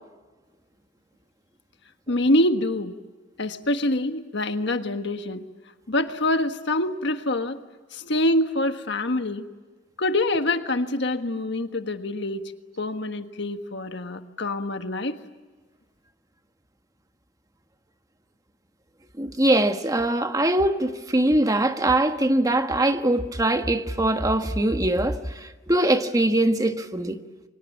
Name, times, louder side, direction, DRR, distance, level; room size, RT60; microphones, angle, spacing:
voice 1, 2.1-3.0 3.4-5.4 5.9-7.6 7.9-9.4 10.0-12.4 12.8-15.2, left 1 dB, 65° left, 1.5 m, -25 dB
voice 2, 19.2-27.2, right 1 dB, 20° right, 1.5 m, -22 dB
30.0 x 24.5 x 7.4 m
head